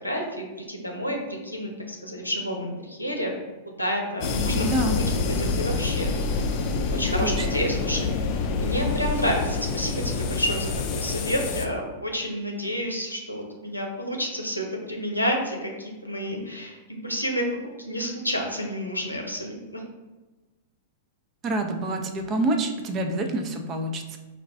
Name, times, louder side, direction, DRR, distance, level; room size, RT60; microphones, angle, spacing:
voice 1, 0.0-3.3 3.6-6.4 6.9-8.2 8.5-17.5 17.8-19.8, equal, 90° left, 0 dB, 0.7 m, -30 dB
sound 1, 4.2-11.7, left 4 dB, 40° left, 0.4 m, -27 dB
voice 2, 4.6-5.0 7.2-7.5 21.4-24.2, right 2 dB, 30° right, 5 dB, 0.5 m, -27 dB
4.7 x 2.5 x 3.4 m, 1.2 s
figure-of-eight pair, 100°, 0 cm